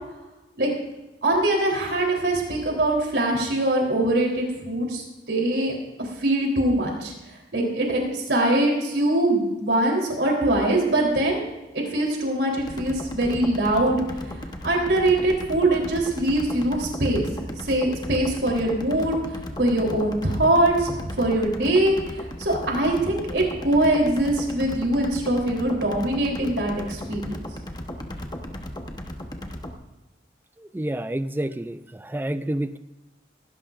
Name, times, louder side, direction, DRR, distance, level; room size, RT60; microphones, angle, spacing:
voice 1, 1.2-7.1 7.5-11.4 11.7-14.0 14.6-17.2 17.6-19.2 19.6-27.4, right 1 dB, 75° right, 0 dB, 3.5 m, -23 dB
sound 1, 12.6-29.8, left 1 dB, 20° left, 1.0 m, -36 dB
voice 2, 30.7-32.8, right 1 dB, 10° right, 13 dB, 0.3 m, -29 dB
18.0 x 16.0 x 2.5 m, 1.1 s
head